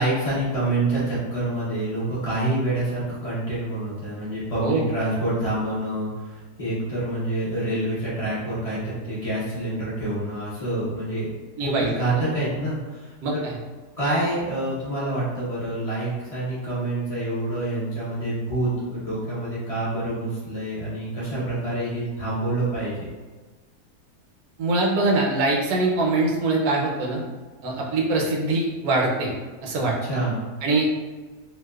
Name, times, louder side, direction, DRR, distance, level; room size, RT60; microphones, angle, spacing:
voice 1, 0.0-11.3 11.6-13.4 14.0-22.9 29.8-30.4, right 1 dB, 50° left, -10 dB, 0.4 m, -27 dB
voice 2, 4.6-4.9 11.6-11.9 13.2-13.5 24.6-27.2 27.6-29.3 29.6-29.9 30.6-30.9, right 2 dB, 75° right, -2 dB, 1.0 m, -23 dB
2.7 x 2.0 x 2.2 m, 1.3 s
omnidirectional pair, 1.7 m